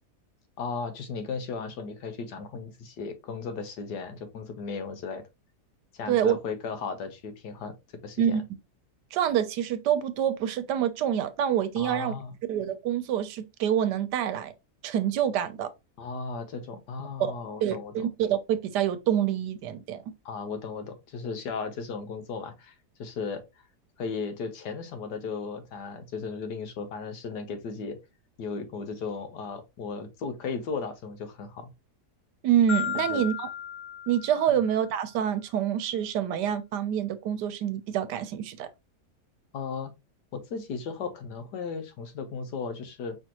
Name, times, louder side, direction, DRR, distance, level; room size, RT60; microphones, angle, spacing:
voice 1, 0.6-5.2 5.9-7.7 8.0-8.4 11.8-12.3 16.0-18.1 20.2-23.4 24.0-28.0 28.4-31.7 33.1-33.2 34.5-34.6 39.5-39.9 40.3-43.2, left 5 dB, 85° left, 1.5 m, -36 dB
voice 2, 9.1-12.1 12.5-14.5 14.8-15.7 17.2-17.3 17.6-20.0 32.4-33.5 34.1-38.7, right 10 dB, 85° right, 1.3 m, -26 dB
Marimba xylophone, 32.7-34.9, left 9 dB, 55° left, 0.5 m, -35 dB
5.1 x 3.4 x 2.9 m
omnidirectional pair, 1.8 m